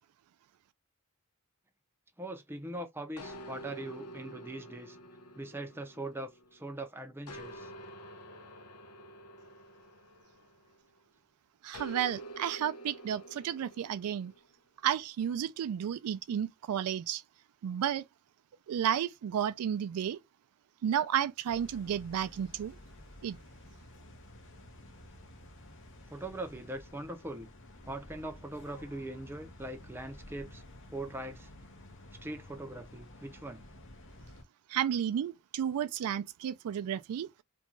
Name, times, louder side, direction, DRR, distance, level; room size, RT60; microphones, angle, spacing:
voice 1, 2.2-5.0 5.3-7.7 26.1-27.5 27.8-30.6 30.9-31.5 32.2-33.6, right 1 dB, 10° right, 0.5 m, -41 dB
sound 1, 3.2-6.7 7.3-11.0 11.7-14.4, right 1 dB, 90° left, 0.6 m, -48 dB
voice 2, 11.6-14.3 14.8-17.2 17.6-18.1 18.7-20.2 20.8-22.8 23.2-23.4 34.7-37.3, right 9 dB, 80° right, 0.3 m, -32 dB
sound 2, 21.5-34.4, left 1 dB, 60° left, 0.7 m, -52 dB
2.5 x 2.2 x 2.9 m
head